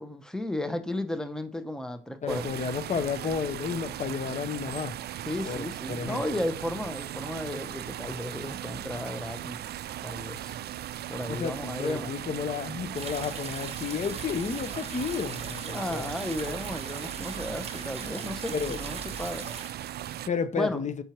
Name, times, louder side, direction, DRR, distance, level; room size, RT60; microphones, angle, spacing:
voice 1, 0.0-2.5 5.3-9.6 10.0-10.6 11.1-12.1 15.6-19.5 20.5-20.8, left 1 dB, 5° left, 0.8 m, -34 dB
voice 2, 2.2-5.0 5.5-6.2 11.3-16.1 18.5-18.8 20.3-21.0, left 6 dB, 35° left, 0.8 m, -32 dB
sound 1, 2.3-20.3, right 12 dB, 55° right, 0.4 m, -38 dB
sound 2, 12.9-19.7, right 5 dB, 30° right, 0.9 m, -40 dB
6.9 x 4.4 x 4.5 m
cardioid pair, 90°, 20 cm